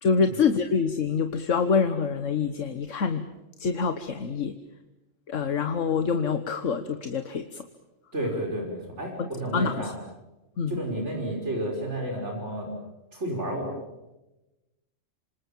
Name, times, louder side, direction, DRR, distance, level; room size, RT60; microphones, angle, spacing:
voice 1, 0.0-3.2 3.6-4.5 5.3-7.6 9.2-9.9 10.6-10.8, left 5 dB, 75° left, 8 dB, 1.6 m, -26 dB
voice 2, 8.1-9.9 10.7-12.7 13.1-13.8, right 1 dB, 65° right, 1 dB, 5.8 m, -31 dB
27.5 x 26.5 x 7.4 m, 0.99 s
omnidirectional pair, 1.3 m